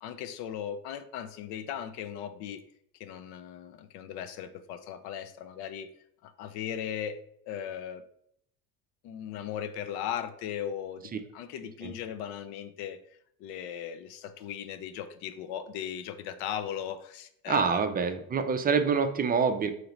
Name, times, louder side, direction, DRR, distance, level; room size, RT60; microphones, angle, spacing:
voice 1, 0.0-2.6 3.0-5.9 6.2-8.0 9.0-13.0 13.4-17.8, left 9 dB, 65° left, 10 dB, 0.6 m, -38 dB
voice 2, 17.5-19.7, right 5 dB, 20° right, 8 dB, 0.4 m, -26 dB
3.8 x 2.9 x 3.0 m, 0.71 s
supercardioid pair, 80°, 42 cm